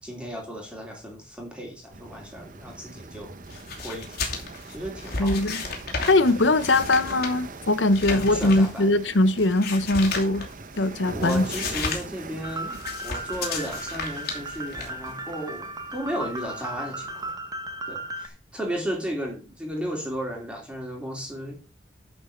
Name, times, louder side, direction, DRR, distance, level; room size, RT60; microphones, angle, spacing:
voice 1, 0.0-3.3 3.8-4.2 4.7-5.3 8.1-8.9 11.1-15.7 15.9-17.3 17.9-21.6, equal, 5° right, 2.8 m, -34 dB
sound 1, 1.9-17.3, right 3 dB, 50° right, 1.0 m, -42 dB
sound 2, 3.5-10.8 11.1-12.1 12.3-15.1, left 4 dB, 60° left, 2.8 m, -34 dB
voice 2, 5.2-5.6 6.1-10.5 10.8-11.5, left 2 dB, 85° left, 0.9 m, -21 dB
sound 3, 12.4-18.3, right 1 dB, 20° right, 1.1 m, -36 dB
11.0 x 4.6 x 6.6 m
head